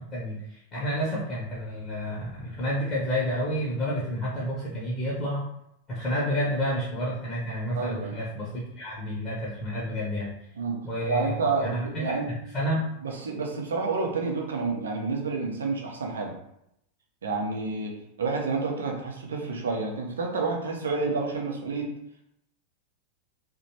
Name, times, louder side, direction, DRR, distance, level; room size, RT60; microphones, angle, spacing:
voice 1, 0.0-5.4 5.9-10.3 10.8-11.3 11.6-12.2 12.5-12.8, equal, 30° left, -5 dB, 0.8 m, -30 dB
voice 2, 7.8-8.2 10.6-12.3 13.0-16.3 17.2-17.9 18.2-21.9, right 4 dB, 65° right, 1 dB, 0.6 m, -29 dB
2.8 x 2.1 x 2.8 m, 0.78 s
figure-of-eight pair, 90°, 0 cm